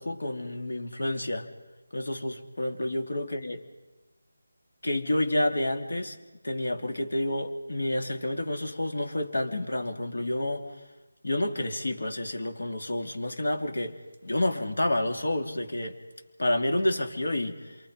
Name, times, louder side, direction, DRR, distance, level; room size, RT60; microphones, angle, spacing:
voice 1, 0.0-1.5 1.9-3.6 4.8-6.2 6.4-10.7 11.2-16.0 16.4-17.8, left 1 dB, 75° left, 4 dB, 3.2 m, -29 dB
27.5 x 24.0 x 5.6 m, 1.2 s
figure-of-eight pair, 170°, 0 cm